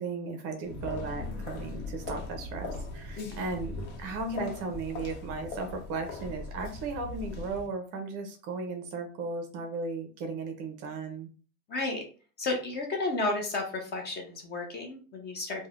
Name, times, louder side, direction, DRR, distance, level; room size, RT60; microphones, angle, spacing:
voice 1, 0.0-11.3, right 3 dB, 40° right, 5 dB, 0.5 m, -36 dB
sound 1, 0.6-7.7, left 2 dB, 70° left, 0.9 m, -39 dB
voice 2, 11.7-12.1 12.4-15.7, left 2 dB, 25° left, 2 dB, 0.6 m, -32 dB
3.1 x 2.1 x 2.3 m, 0.38 s
supercardioid pair, 140°, 40 cm